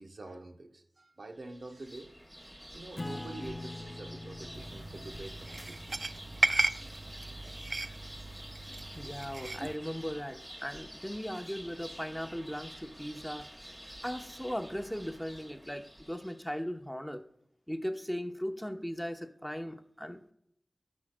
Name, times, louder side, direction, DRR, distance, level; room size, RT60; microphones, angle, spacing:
voice 1, 0.0-2.1 2.4-5.8, right 2 dB, 80° right, 5 dB, 0.8 m, -46 dB
sound 1, 1.4-16.5, equal, 15° right, 2.3 m, -49 dB
Acoustic guitar / Strum, 3.0-8.0, left 2 dB, 35° left, 0.5 m, -45 dB
sound 2, 4.5-9.8, right 2 dB, 55° right, 0.3 m, -35 dB
voice 2, 8.9-13.5 14.0-17.2 17.7-20.3, equal, 5° left, 6 dB, 0.8 m, -38 dB
17.0 x 6.1 x 2.2 m, 0.72 s
wide cardioid pair, 70°, 0 cm